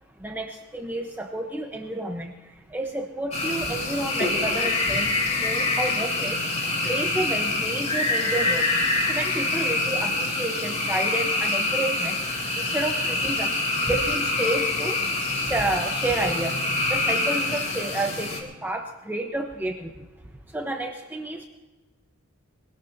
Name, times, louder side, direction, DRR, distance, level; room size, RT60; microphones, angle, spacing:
voice 1, 0.2-2.3 2.7-5.1 5.4-6.4 6.8-8.7 9.1-12.2 12.6-13.5 13.9-15.0 15.3-16.6 16.9-19.9 20.5-21.4, right 1 dB, 10° right, 2 dB, 0.9 m, -30 dB
sound 1, 3.3-18.4, left 2 dB, 35° left, 3.1 m, -26 dB
23.0 x 17.5 x 2.7 m, 1.3 s
head